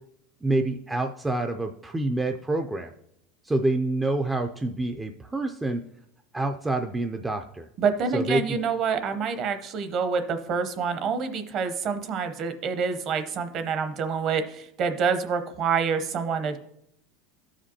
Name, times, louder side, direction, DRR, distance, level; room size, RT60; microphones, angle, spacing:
voice 1, 0.4-2.9 3.4-5.8 6.3-7.7 8.1-8.6, right 2 dB, 10° right, 5 dB, 0.3 m, -27 dB
voice 2, 7.8-16.6, right 5 dB, 40° right, 9 dB, 0.7 m, -27 dB
13.0 x 5.1 x 2.8 m, 0.77 s
supercardioid pair, 140°, 0 cm